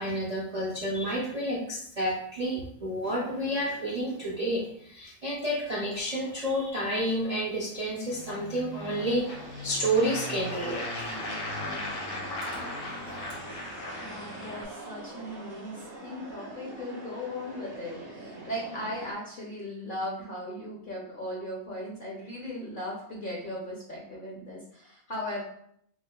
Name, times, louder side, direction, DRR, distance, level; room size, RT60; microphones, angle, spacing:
voice 1, 0.0-9.4 9.6-11.1, right 1 dB, 45° right, -5 dB, 0.5 m, -30 dB
sound 1, 3.0-4.8 5.3-19.1, right 2 dB, 90° right, 1.8 m, -47 dB
sound 2, 8.1-14.6, left 1 dB, 70° left, 1.2 m, -37 dB
voice 2, 14.0-25.4, left 1 dB, 45° left, -4 dB, 0.7 m, -37 dB
6.3 x 2.1 x 2.3 m, 0.69 s
omnidirectional pair, 1.6 m